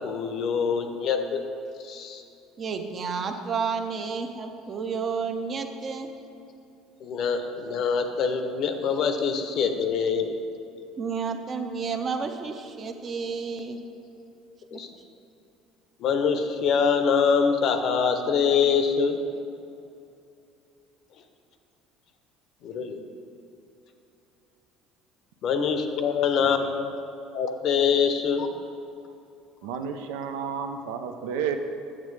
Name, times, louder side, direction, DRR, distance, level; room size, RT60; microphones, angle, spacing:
voice 1, 0.0-1.4 1.8-2.2 7.0-10.3 14.7-14.9 16.0-19.2 22.6-23.0 25.4-26.9 27.3-28.5, left 6 dB, 55° left, 7 dB, 0.6 m, -24 dB
voice 2, 2.6-6.1 11.0-13.8 14.7-14.8, right 5 dB, 40° right, 6 dB, 0.6 m, -31 dB
voice 3, 29.6-31.6, right 7 dB, 85° right, 7 dB, 0.5 m, -31 dB
7.4 x 7.3 x 3.2 m, 2.7 s
supercardioid pair, 105°, 0 cm